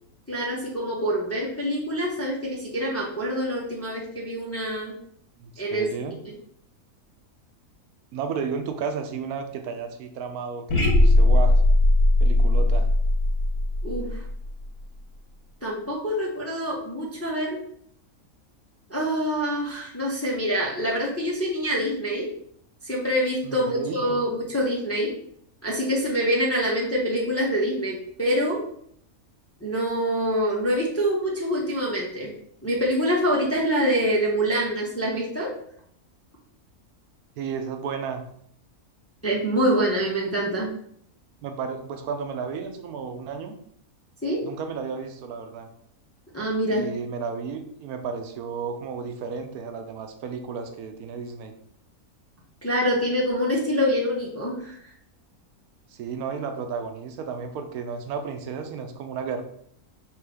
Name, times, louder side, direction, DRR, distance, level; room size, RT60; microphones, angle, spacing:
voice 1, 0.3-4.9 5.6-5.9 13.8-14.2 15.6-17.6 18.9-22.3 22.8-25.1 25.6-28.6 29.6-32.3 32.6-35.5 39.2-40.7 44.2-44.4 46.3-46.8 52.6-54.7, equal, 15° left, -4 dB, 0.6 m, -25 dB
voice 2, 5.4-6.1 8.1-11.6 12.2-12.9 23.4-24.2 37.4-38.2 41.4-43.6 44.4-45.7 46.7-51.5 55.9-59.4, right 5 dB, 80° right, 6 dB, 1.1 m, -33 dB
sound 1, 10.7-14.8, left 1 dB, 80° left, 1.7 m, -19 dB
3.7 x 2.9 x 4.8 m, 0.67 s
omnidirectional pair, 1.6 m